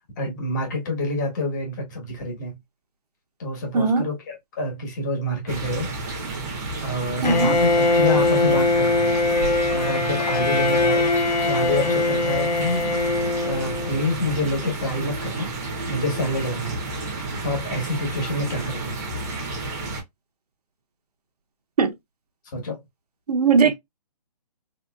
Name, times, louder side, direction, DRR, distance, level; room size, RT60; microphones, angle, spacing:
voice 1, 0.2-2.6 3.4-5.9 6.8-9.2 9.7-11.1 11.4-12.9 13.4-15.5 15.9-16.8 17.4-19.0 22.5-22.8, left 1 dB, 25° left, 1.2 m, -27 dB
voice 2, 3.7-4.1 7.2-7.6 21.8-21.9 23.3-23.7, right 5 dB, 65° right, 0.7 m, -19 dB
sound 1, 5.5-20.0, right 3 dB, 25° right, 0.8 m, -31 dB
Bowed string instrument, 7.2-14.2, left 3 dB, 80° left, 0.9 m, -21 dB
3.3 x 2.8 x 2.2 m
hypercardioid pair, 160°, 21 cm